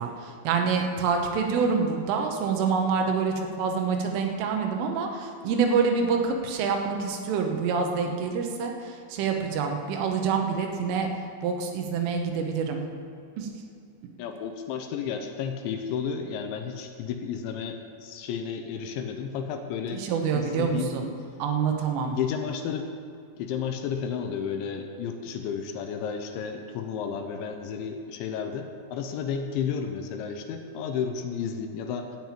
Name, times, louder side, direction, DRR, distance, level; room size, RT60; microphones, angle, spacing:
voice 1, 0.0-11.1 11.4-12.8 13.4-13.5 19.9-21.1 21.4-22.2, right 5 dB, 90° right, 3 dB, 3.7 m, -26 dB
voice 2, 14.2-20.1 20.3-20.9 22.0-22.9 23.4-32.1, left 7 dB, 80° left, 6 dB, 3.0 m, -32 dB
13.0 x 5.9 x 8.9 m, 2.4 s
omnidirectional pair, 5.5 m